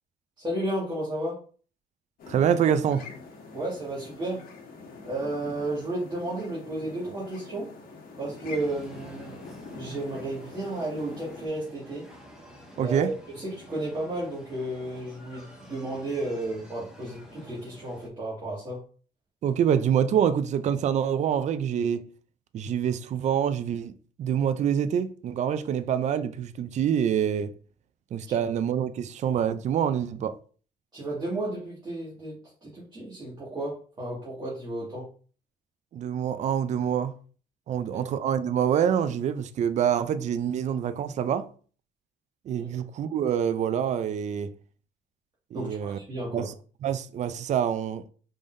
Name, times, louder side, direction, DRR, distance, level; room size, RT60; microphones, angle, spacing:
voice 1, 0.4-1.4 3.5-4.4 5.0-7.7 8.2-12.1 12.8-18.8 28.3-28.5 30.9-35.1 37.7-38.1 42.6-42.7 45.5-46.5, right 1 dB, 25° right, 2.0 m, -33 dB
sound 1, 2.2-11.5, left 4 dB, 60° left, 1.3 m, -44 dB
voice 2, 2.3-3.0 12.8-13.1 19.4-22.0 22.5-27.5 28.1-30.3 35.9-37.1 37.7-41.5 42.5-44.5 45.5-46.0 46.3-46.5 46.8-48.0, right 8 dB, 45° right, 0.4 m, -26 dB
sound 2, 8.5-18.1, equal, 5° right, 1.6 m, -50 dB
5.1 x 3.7 x 2.6 m
cardioid pair, 110°, 17 cm